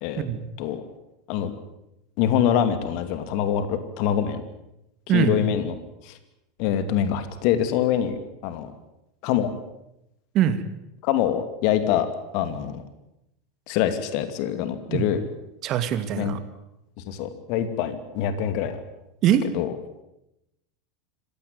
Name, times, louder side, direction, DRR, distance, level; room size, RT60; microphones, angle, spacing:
voice 1, 0.2-0.5 5.1-5.5 10.3-10.6 14.9-15.1 15.6-16.4 19.2-19.5, right 9 dB, 45° right, 11 dB, 2.4 m, -23 dB
voice 2, 2.2-4.4 5.1-5.7 6.0-6.2 6.6-8.2 8.4-8.7 9.2-9.5 11.0-12.1 12.3-12.8 13.7-15.2 16.2-16.4 17.0-18.8 19.5-19.7, left 10 dB, 55° left, 10 dB, 2.6 m, -24 dB
26.0 x 16.0 x 9.5 m, 0.88 s
figure-of-eight pair, 80°, 0 cm